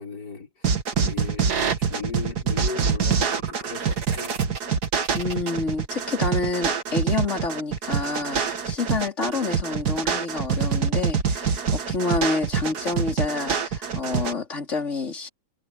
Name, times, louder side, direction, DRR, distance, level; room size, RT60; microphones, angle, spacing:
voice 1, 0.0-4.4, left 5 dB, 90° left, 6.2 m, -37 dB
sound 1, 0.6-14.3, right 6 dB, 75° right, 2.2 m, -25 dB
voice 2, 5.1-15.3, left 3 dB, 45° left, 4.4 m, -28 dB
omnidirectional pair, 1.7 m